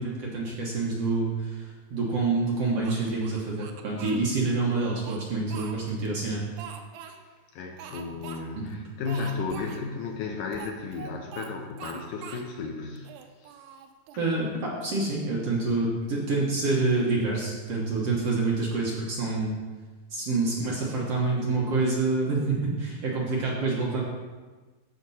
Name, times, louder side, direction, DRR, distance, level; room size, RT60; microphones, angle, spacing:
voice 1, 0.0-6.5 8.6-8.7 14.2-19.6 20.1-24.0, right 3 dB, 55° right, -4 dB, 1.9 m, -27 dB
Speech, 2.8-4.2 4.8-6.1 6.6-7.2 7.8-8.4 8.7-8.8 9.1-9.8 10.5-11.5 11.8-12.5 13.0-14.3, right 7 dB, 75° right, 2.1 m, -43 dB
voice 2, 7.5-13.1 13.4-13.5, left 4 dB, 75° left, 1 dB, 2.1 m, -34 dB
14.0 x 5.2 x 4.2 m, 1.3 s
omnidirectional pair, 4.1 m